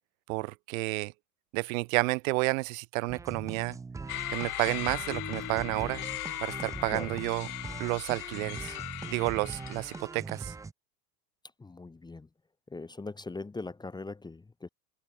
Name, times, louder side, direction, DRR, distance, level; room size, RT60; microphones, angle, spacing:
voice 1, 0.3-1.1 1.5-3.8 4.3-6.0 6.4-7.5 7.8-8.7 9.1-10.5, right 26 dB, 55° right, 0.9 m, -31 dB
sound 1, 3.1-10.7, right 4 dB, 5° right, 0.5 m, -42 dB
sound 2, 4.1-10.0, left 20 dB, 70° left, 0.6 m, -39 dB
sound 3, 5.1-8.3, left 10 dB, 35° left, 5.3 m, -48 dB
voice 2, 11.6-12.3 12.7-14.7, left 3 dB, 10° left, 0.9 m, -40 dB
hypercardioid pair, 85°, 48 cm